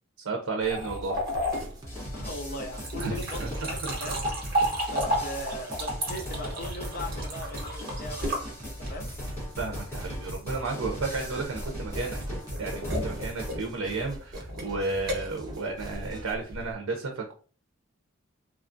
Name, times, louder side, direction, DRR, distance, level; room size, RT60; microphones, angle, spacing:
voice 1, 0.2-1.2 3.0-3.5 3.8-4.1 9.6-12.2 12.6-17.3, right 3 dB, 85° right, 2 dB, 0.5 m, -33 dB
sound 1, 0.6-9.2 11.0-16.7, equal, 45° right, 1.0 m, -33 dB
sound 2, 0.9-16.3, equal, 20° right, 0.5 m, -44 dB
sound 3, 1.9-13.6, equal, 10° left, 1.1 m, -38 dB
voice 2, 2.1-4.2 4.9-9.1, equal, 45° left, 4 dB, 0.5 m, -39 dB
3.0 x 2.3 x 2.5 m, 0.40 s
head